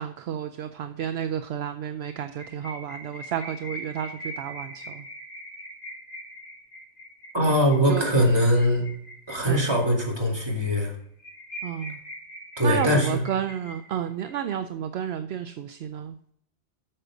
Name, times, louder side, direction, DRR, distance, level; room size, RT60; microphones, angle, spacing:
voice 1, 0.0-5.1 7.9-8.0 9.4-9.7 11.6-12.0 12.6-16.1, right 9 dB, 70° right, 8 dB, 0.8 m, -31 dB
sound 1, 2.2-10.1 10.5-10.6 10.9-11.0 11.2-14.3, equal, 75° left, 2.7 m, -41 dB
voice 2, 7.3-8.8 9.3-10.9 12.6-13.2, equal, 20° right, -2 dB, 2.5 m, -22 dB
8.7 x 6.7 x 5.0 m, 0.65 s
omnidirectional pair, 1.2 m